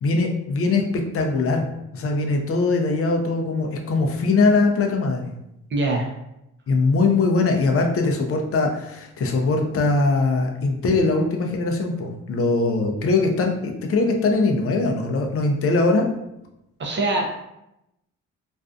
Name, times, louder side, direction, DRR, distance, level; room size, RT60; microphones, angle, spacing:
voice 1, 0.0-0.8 1.1-1.7 1.9-5.3 6.7-16.1, left 3 dB, 50° left, 3 dB, 0.5 m, -21 dB
voice 2, 5.7-6.1 16.8-17.4, right 2 dB, 40° right, 0 dB, 0.5 m, -23 dB
2.5 x 2.2 x 2.5 m, 0.86 s
cardioid pair, 90°, 30 cm